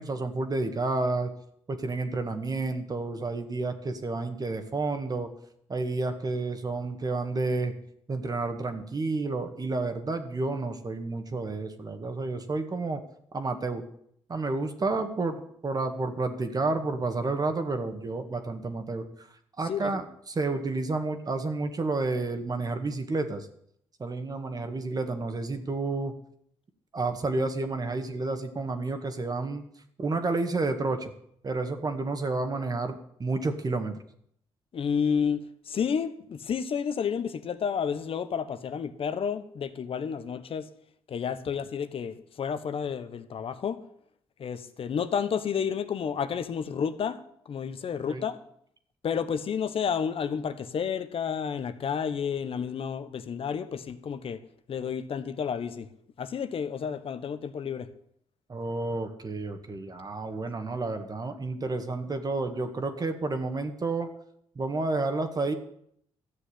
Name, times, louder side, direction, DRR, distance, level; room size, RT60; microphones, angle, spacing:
voice 1, 0.0-1.3 1.7-5.3 5.7-7.7 8.1-13.0 13.3-13.8 14.3-19.3 19.6-23.5 24.0-26.1 26.9-29.6 30.0-31.1 31.4-34.0 48.1-48.3 58.5-64.1 64.6-65.5, right 3 dB, 35° right, 1.9 m, -30 dB
voice 2, 34.7-40.7 41.1-43.8 44.4-47.2 47.4-48.4 49.0-54.4 54.7-55.9 56.2-57.9, left 7 dB, 55° left, 1.3 m, -31 dB
13.5 x 6.5 x 10.0 m
cardioid pair, 70°, 11 cm